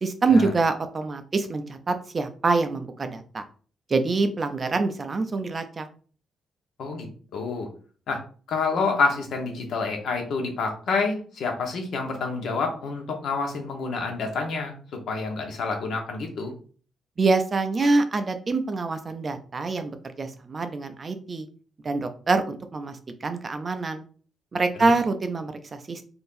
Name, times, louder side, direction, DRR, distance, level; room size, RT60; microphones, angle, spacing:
voice 1, 0.0-3.4 3.9-5.9 17.2-21.5 21.8-24.0 24.5-26.1, right 3 dB, 30° right, 8 dB, 0.4 m, -25 dB
voice 2, 7.3-7.7 8.1-8.2 8.5-16.5 24.8-24.9, left 4 dB, 70° left, 3 dB, 0.9 m, -28 dB
3.6 x 2.6 x 2.5 m, 0.41 s
cardioid pair, 130°, 0 cm